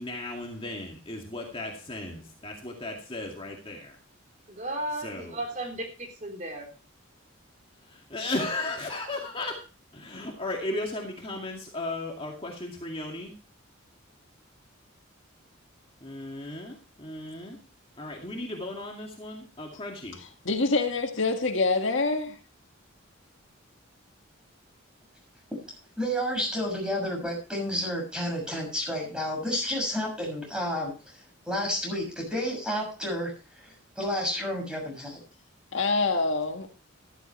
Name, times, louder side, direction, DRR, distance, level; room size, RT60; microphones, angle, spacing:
voice 1, 0.0-4.0 5.0-5.4 7.8-9.6 9.9-13.3 16.0-17.6 18.0-20.2, left 2 dB, 25° left, 2.2 m, -35 dB
voice 2, 4.5-6.7, right 1 dB, 35° right, 3.7 m, -35 dB
voice 3, 20.4-22.4 35.7-36.7, left 3 dB, 65° left, 1.8 m, -25 dB
voice 4, 26.0-31.2 31.5-35.2, equal, 5° right, 6.6 m, -31 dB
13.5 x 13.5 x 3.2 m
head